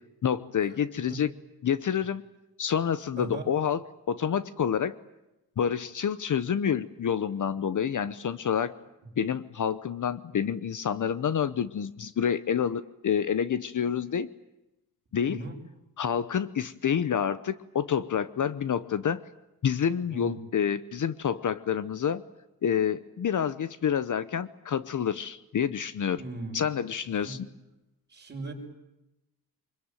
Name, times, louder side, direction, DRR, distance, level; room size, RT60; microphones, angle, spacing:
voice 1, 0.2-1.3 1.6-2.2 2.6-5.0 5.6-8.7 9.2-14.3 15.1-15.4 16.0-19.2 19.6-22.2 22.6-26.2 26.5-27.5, left 8 dB, 55° left, 15 dB, 0.9 m, -28 dB
voice 2, 3.2-3.5 15.2-15.6 20.1-20.4 26.2-26.6 27.2-27.4 28.1-28.5, right 2 dB, 25° right, 0 dB, 6.1 m, -37 dB
25.0 x 22.5 x 9.1 m, 0.94 s
wide cardioid pair, 165°, 38 cm